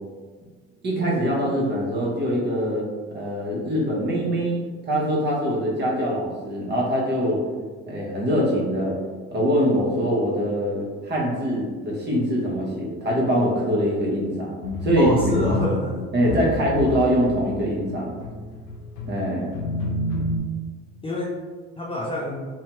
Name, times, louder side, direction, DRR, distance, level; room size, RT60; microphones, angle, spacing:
voice 1, 0.8-2.8 3.1-4.6 4.9-7.4 7.9-8.9 9.3-15.1 16.1-18.2 19.1-19.5, equal, 35° right, -4 dB, 0.9 m, -23 dB
sound 1, 14.6-20.4, left 1 dB, 85° left, 0.5 m, -29 dB
voice 2, 15.0-16.0 21.0-21.4 21.8-22.5, left 1 dB, 20° left, -3 dB, 0.4 m, -27 dB
2.6 x 2.2 x 2.9 m, 1.5 s
supercardioid pair, 80°, 30 cm